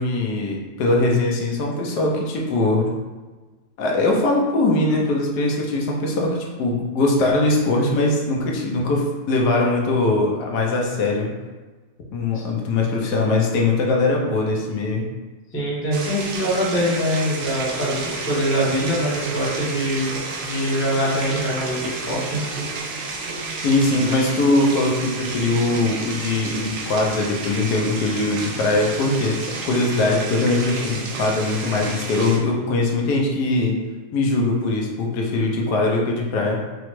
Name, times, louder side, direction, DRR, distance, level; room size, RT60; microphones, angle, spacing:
voice 1, 0.0-2.9 3.8-11.3 12.1-15.0 23.6-33.8 34.1-36.6, left 2 dB, 85° left, -1 dB, 1.3 m, -21 dB
voice 2, 15.5-20.1 20.4-22.5, equal, 10° left, -6 dB, 0.5 m, -23 dB
sound 1, 15.9-32.4, right 3 dB, 65° right, 0.7 m, -31 dB
4.8 x 2.1 x 3.0 m, 1.3 s
omnidirectional pair, 1.7 m